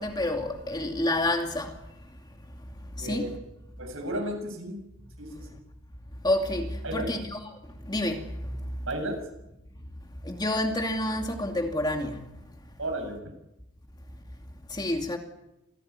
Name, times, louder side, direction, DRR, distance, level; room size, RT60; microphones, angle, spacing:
voice 1, 0.0-1.7 3.0-3.3 6.2-7.4 7.9-8.5 10.3-12.2 14.7-15.2, left 1 dB, 20° left, 2.5 m, -28 dB
voice 2, 3.0-3.3 3.8-4.8 5.2-5.6 6.8-7.1 8.9-9.2 12.8-13.3, right 1 dB, 70° right, 7.2 m, -33 dB
27.0 x 17.0 x 9.7 m
head